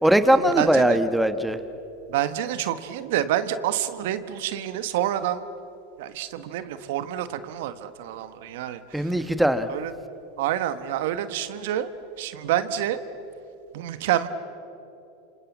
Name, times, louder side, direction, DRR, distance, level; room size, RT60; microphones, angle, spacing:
voice 1, 0.0-1.6 8.9-9.7, right 1 dB, 5° right, 10 dB, 1.3 m, -20 dB
voice 2, 0.6-1.0 2.1-5.4 6.0-9.1 9.7-9.9 10.4-11.9 12.2-13.0 13.7-14.3, right 11 dB, 70° right, 12 dB, 1.3 m, -28 dB
28.0 x 26.5 x 7.4 m, 3.0 s
hypercardioid pair, 110°, 0 cm